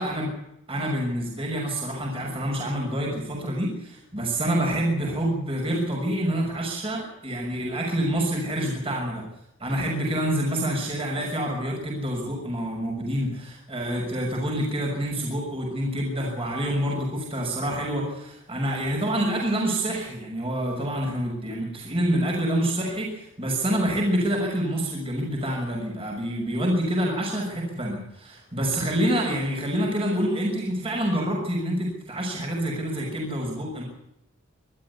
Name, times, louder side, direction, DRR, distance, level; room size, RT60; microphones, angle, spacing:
voice 1, 0.7-9.2 9.6-33.8, right 1 dB, 25° right, -1 dB, 6.2 m, -27 dB
25.5 x 13.5 x 8.3 m, 0.86 s
head